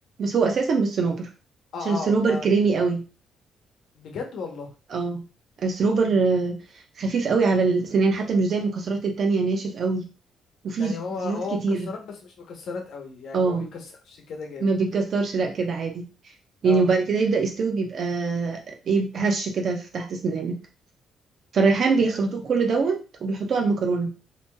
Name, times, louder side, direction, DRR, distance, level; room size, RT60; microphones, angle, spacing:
voice 1, 0.2-1.3 1.9-3.0 4.9-5.2 5.6-6.6 7.0-10.1 10.6-11.0 11.2-11.9 13.3-13.6 14.6-16.0 16.6-18.6 18.9-20.6 21.5-23.0 23.2-24.1, right 4 dB, 55° right, 2 dB, 0.8 m, -23 dB
voice 2, 1.7-2.5 3.9-4.7 10.7-14.7 16.6-16.9 21.9-22.0, left 4 dB, 70° left, 2 dB, 0.9 m, -35 dB
2.9 x 2.9 x 2.3 m, 0.32 s
cardioid pair, 90°, 0 cm